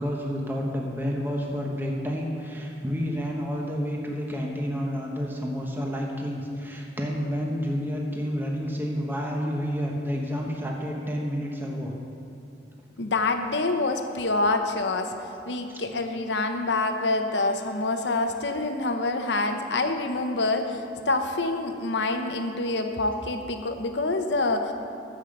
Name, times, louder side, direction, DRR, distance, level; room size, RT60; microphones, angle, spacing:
voice 1, 0.0-11.9, equal, 10° right, -1 dB, 1.1 m, -30 dB
voice 2, 13.0-15.2 15.5-24.7, left 2 dB, 65° left, 6 dB, 0.9 m, -26 dB
14.5 x 5.7 x 6.5 m, 2.6 s
head